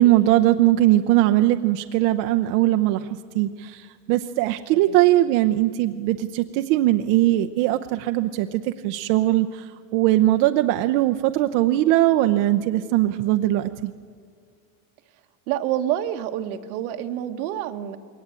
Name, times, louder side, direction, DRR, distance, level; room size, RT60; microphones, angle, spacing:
voice 1, 0.0-3.1 3.3-3.8 4.1-13.9, right 15 dB, 70° right, 8 dB, 0.8 m, -20 dB
voice 2, 15.5-18.0, right 11 dB, 90° right, 7 dB, 1.5 m, -27 dB
21.5 x 18.5 x 8.9 m, 2.2 s
cardioid pair, 145°, 42 cm